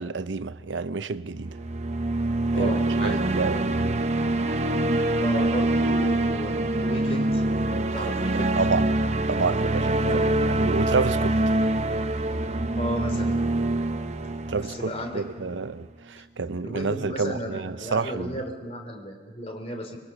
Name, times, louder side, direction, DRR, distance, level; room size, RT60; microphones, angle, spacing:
voice 1, 0.0-1.6 2.6-2.7 3.0-3.7 8.3-8.9 9.3-10.0 10.5-11.4 14.5-18.3, right 4 dB, 90° right, 0.7 m, -29 dB
sound 1, 1.4-15.6, right 2 dB, 40° right, 0.8 m, -25 dB
voice 2, 2.5-3.6 5.2-8.6 10.0-10.3 12.8-13.4 14.6-15.6 16.6-20.0, equal, 35° left, 3.4 m, -35 dB
25.5 x 21.0 x 6.0 m
head